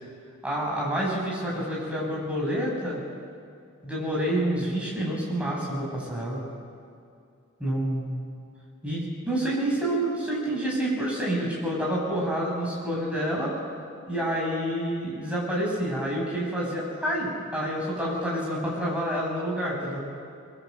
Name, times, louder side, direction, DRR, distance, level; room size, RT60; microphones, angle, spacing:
voice 1, 0.4-3.0 3.8-6.4 7.6-8.2 8.8-13.5 14.0-20.0, right 1 dB, 5° right, -4 dB, 6.2 m, -28 dB
22.0 x 20.0 x 7.9 m, 2.4 s
head